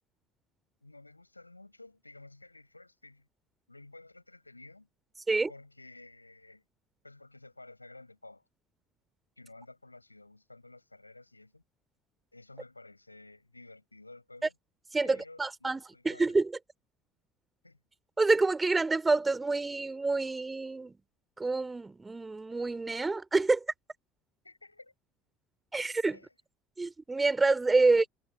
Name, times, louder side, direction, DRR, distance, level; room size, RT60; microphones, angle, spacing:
voice 1, 0.8-3.3 3.7-4.9 5.5-6.6 7.0-8.4 9.4-11.6 12.3-14.5 15.0-16.4 17.6-17.8 24.4-24.9 26.1-26.3, left 2 dB, 90° left, 7.2 m, -53 dB
voice 2, 14.9-16.5 18.2-21.0 21.4-23.6 25.7-26.2 26.8-28.1, right 3 dB, 15° right, 4.1 m, -27 dB
figure-of-eight pair, 60°, 0 cm